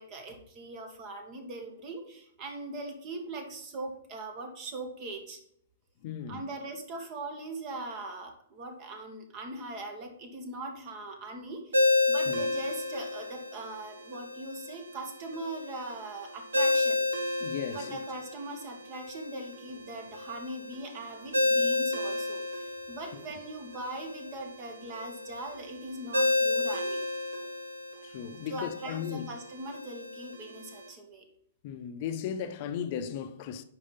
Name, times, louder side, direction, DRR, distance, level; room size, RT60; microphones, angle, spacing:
voice 1, 0.0-5.4 6.3-17.1 17.7-27.1 28.5-31.3, right 2 dB, 40° right, 1.5 m, -41 dB
voice 2, 6.0-6.4 6.9-7.1 12.3-12.4 17.4-18.0 23.1-23.2 28.0-29.3 31.6-33.6, left 8 dB, 50° left, 0.6 m, -36 dB
Ringtone, 11.7-30.9, left 2 dB, 90° right, 1.0 m, -32 dB
4.9 x 4.7 x 5.5 m
hypercardioid pair, 115°, 0 cm